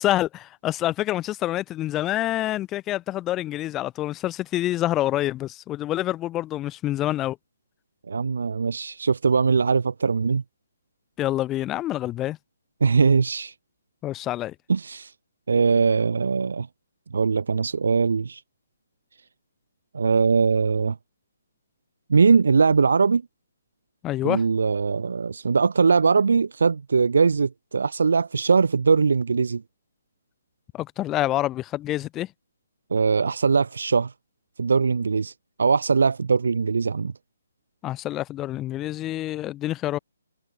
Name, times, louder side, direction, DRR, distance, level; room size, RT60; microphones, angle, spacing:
voice 1, 0.0-7.4 11.2-12.4 14.0-14.5 24.0-24.4 30.7-32.3 37.8-40.0, left 14 dB, 15° left, 0.5 m, -27 dB
voice 2, 8.1-10.4 12.8-13.5 14.7-15.1 15.5-16.7 17.1-18.4 19.9-21.0 22.1-23.2 24.2-29.6 32.9-34.1 34.6-35.3 35.6-37.1, right 5 dB, 70° right, 0.3 m, -21 dB
hypercardioid pair, 145°, 0 cm